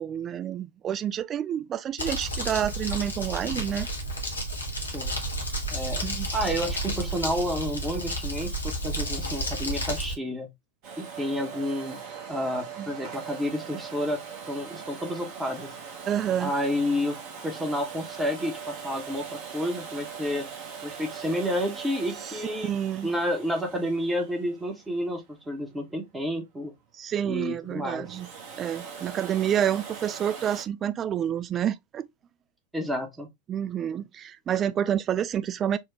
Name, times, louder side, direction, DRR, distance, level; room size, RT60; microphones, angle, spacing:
voice 1, 0.0-3.9 6.0-6.3 12.8-12.9 16.1-16.5 22.4-23.1 27.0-28.3 28.6-32.1 33.5-35.8, right 9 dB, 25° right, 0.3 m, -28 dB
Crumpling crinkling, 2.0-10.1, right 1 dB, 80° left, 1.0 m, -31 dB
voice 2, 4.8-5.2 5.7-6.1 6.3-10.5 11.0-12.0 12.3-14.2 14.5-15.7 16.4-20.5 20.8-22.7 23.0-26.7 27.2-28.1 32.7-33.3, equal, 10° right, 0.8 m, -30 dB
Domestic sounds home sounds, 10.8-25.6 27.9-30.6, right 6 dB, 45° right, 1.0 m, -41 dB
4.5 x 2.2 x 2.9 m
figure-of-eight pair, 90°, 0 cm